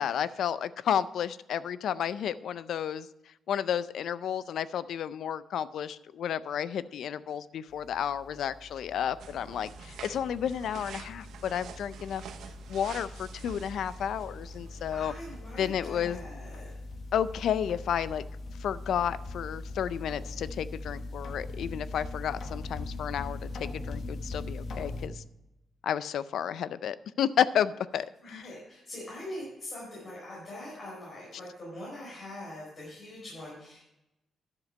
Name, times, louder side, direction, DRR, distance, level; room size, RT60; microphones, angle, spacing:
voice 1, 0.0-3.1 3.5-12.2 12.7-15.1 15.6-16.2 17.1-18.2 18.6-25.2 25.8-28.4, left 9 dB, 70° left, 16 dB, 0.4 m, -31 dB
sound 1, 7.7-25.1, left 2 dB, 55° left, 1.2 m, -41 dB
sound 2, 9.2-15.4, right 8 dB, 85° right, 0.8 m, -48 dB
voice 2, 14.9-16.7 28.2-33.9, left 1 dB, 40° left, -5 dB, 4.3 m, -43 dB
10.5 x 7.3 x 5.3 m, 0.92 s
cardioid pair, 135°, 0 cm